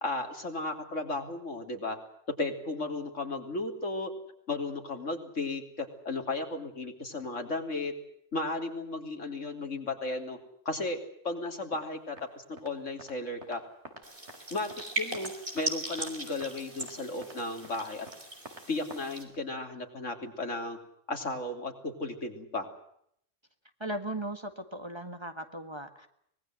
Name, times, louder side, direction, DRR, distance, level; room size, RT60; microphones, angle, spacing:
voice 1, 0.0-2.0 2.4-4.1 4.5-7.9 8.3-10.4 10.7-11.0 11.2-13.6 14.5-14.7 15.0-18.1 18.7-20.8 21.1-22.7, left 2 dB, 80° left, 4 dB, 3.4 m, -34 dB
sound 1, 11.7-11.9 12.2-12.3 12.6-12.7 13.0-13.1 13.4-13.6 13.8-14.4 14.7-14.9 15.1-15.7 16.0-16.1 16.4-16.5 16.8-16.9 17.2-17.4 17.6-17.8 18.1-18.2 18.5-18.7 18.9-19.1 19.3-19.4, right 2 dB, 65° right, 3.7 m, -47 dB
sound 2, 14.0-19.2, right 2 dB, 45° right, 4.6 m, -39 dB
voice 2, 23.8-26.1, right 1 dB, 20° right, 7 dB, 1.8 m, -37 dB
24.5 x 20.5 x 7.7 m, 0.71 s
omnidirectional pair, 1.3 m